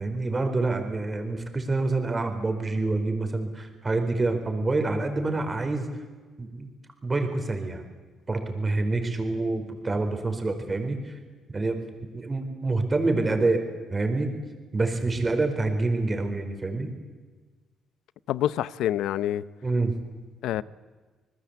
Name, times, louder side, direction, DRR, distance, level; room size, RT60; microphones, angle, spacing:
voice 1, 0.0-5.9 6.4-6.7 7.0-7.8 8.3-11.1 11.5-11.8 12.1-13.6 13.9-14.3 14.7-16.9 19.6-20.0, right 3 dB, 25° right, 4.4 m, -27 dB
voice 2, 18.3-19.4 20.4-20.6, left 12 dB, 85° left, 0.7 m, -26 dB
26.5 x 20.0 x 8.2 m
cardioid pair, 90°, 0 cm